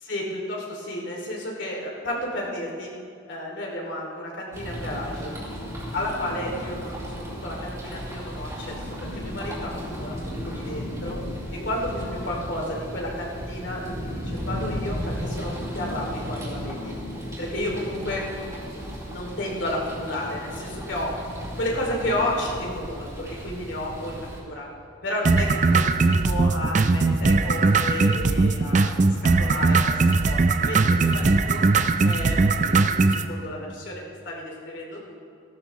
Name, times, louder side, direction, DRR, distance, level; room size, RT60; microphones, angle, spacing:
voice 1, 0.0-2.9 3.3-5.4 5.9-11.2 11.5-16.9 17.4-18.2 19.1-21.1 21.6-24.7 25.0-31.6 32.0-35.1, left 1 dB, 75° left, -2 dB, 2.7 m, -32 dB
sound 1, 4.5-24.4, equal, 20° right, 3.5 m, -35 dB
sound 2, 25.3-33.3, right 3 dB, 40° right, 0.5 m, -20 dB
17.0 x 13.0 x 3.1 m, 2.3 s
head